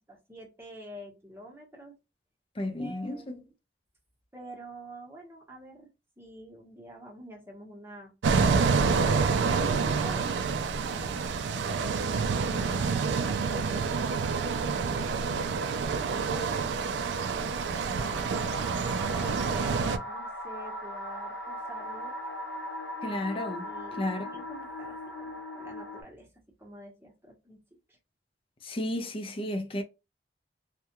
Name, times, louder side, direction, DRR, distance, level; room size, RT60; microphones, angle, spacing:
voice 1, 0.1-2.0 2.8-3.5 4.3-5.9 6.2-8.1 9.0-11.3 12.3-15.6 16.2-18.6 19.0-22.2 23.6-26.3 26.6-27.6 27.9-28.0, right 1 dB, 15° right, 0.9 m, -47 dB
voice 2, 2.6-3.4 23.0-23.7 24.0-24.3 28.6-29.8, left 1 dB, 30° left, 0.5 m, -32 dB
sound 1, 8.2-20.0, right 5 dB, 75° right, 0.3 m, -28 dB
sound 2, 18.0-26.0, left 1 dB, 80° left, 0.7 m, -39 dB
2.3 x 2.1 x 2.9 m
head